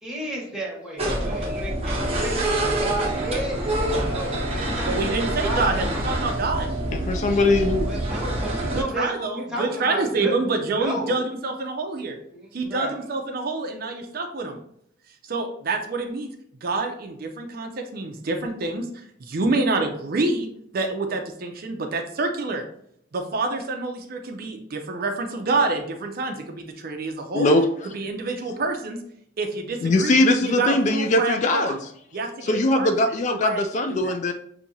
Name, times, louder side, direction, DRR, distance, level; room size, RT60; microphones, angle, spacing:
voice 1, 0.0-3.6 3.9-6.0 7.9-10.4 10.7-11.2 12.3-12.9, right 1 dB, 5° right, -4 dB, 1.4 m, -32 dB
sound 1, 1.0-8.8, right 1 dB, 35° right, 1.0 m, -26 dB
voice 2, 4.8-6.7 8.7-12.2 12.5-14.6 15.3-16.3 16.6-18.9 19.2-20.5 20.7-22.6 23.1-27.5 27.9-29.0 29.4-31.7 32.1-32.9 33.3-33.6 33.9-34.1, right 3 dB, 55° right, 4 dB, 0.5 m, -27 dB
voice 3, 6.9-7.9 27.3-27.7 29.8-31.9 32.4-34.3, left 2 dB, 40° left, 7 dB, 0.3 m, -21 dB
5.8 x 2.7 x 2.7 m, 0.69 s
head